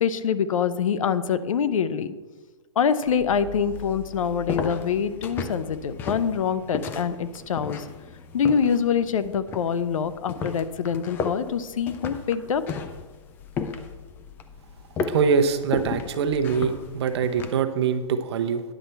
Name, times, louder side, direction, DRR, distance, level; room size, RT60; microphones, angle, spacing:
voice 1, 0.0-2.1 2.8-7.8 8.3-12.6, left 7 dB, 80° left, 13 dB, 0.7 m, -25 dB
sound 1, 3.1-17.6, left 5 dB, 10° left, 0.4 m, -35 dB
voice 2, 15.1-18.6, right 6 dB, 55° right, 8 dB, 0.8 m, -23 dB
10.0 x 4.4 x 6.9 m, 1.3 s
hypercardioid pair, 155°, 17 cm